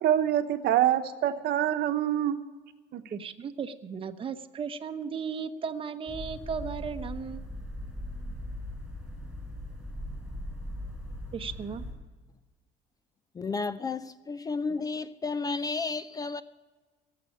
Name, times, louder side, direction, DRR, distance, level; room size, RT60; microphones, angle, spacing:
voice 1, 0.0-2.4 2.9-3.0, right 11 dB, 60° right, 1.0 m, -25 dB
voice 2, 3.1-7.4 11.3-11.8, right 6 dB, 30° right, 0.9 m, -35 dB
sound 1, 6.1-11.9, left 1 dB, ahead, 5.3 m, -39 dB
voice 3, 13.3-16.4, left 4 dB, 20° left, 0.4 m, -32 dB
17.5 x 7.6 x 8.4 m
cardioid pair, 140°, 19 cm